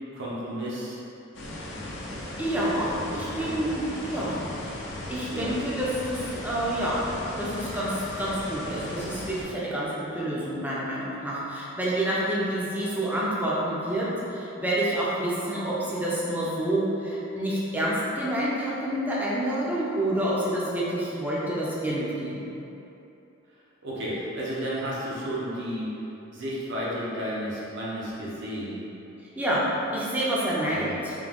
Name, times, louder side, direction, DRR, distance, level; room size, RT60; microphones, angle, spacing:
voice 1, 0.1-1.0 3.2-3.8 4.1-4.3 5.3-5.6 23.8-25.9 26.3-28.8 30.7-31.0, equal, 60° right, -7 dB, 0.8 m, -32 dB
sound 1, 1.3-9.4, left 1 dB, 60° left, 0.6 m, -37 dB
voice 2, 2.4-4.4 5.1-7.1 7.4-22.5 29.4-31.1, right 1 dB, 10° right, -7 dB, 0.5 m, -28 dB
3.7 x 2.8 x 3.5 m, 3.0 s
head